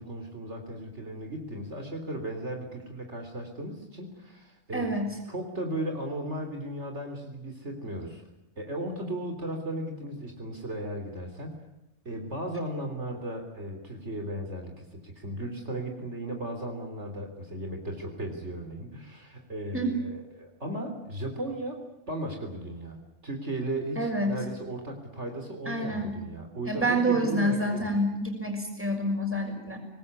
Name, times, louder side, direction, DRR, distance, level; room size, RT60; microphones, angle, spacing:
voice 1, 0.0-4.9 5.3-8.2 8.6-11.6 12.1-21.8 22.1-27.9, right 1 dB, 60° right, 4 dB, 3.8 m, -36 dB
voice 2, 4.7-5.1 19.7-20.0 24.0-24.4 25.7-26.2 26.7-29.8, right 1 dB, 10° right, 3 dB, 6.0 m, -27 dB
25.5 x 19.5 x 9.7 m, 0.91 s
omnidirectional pair, 1.3 m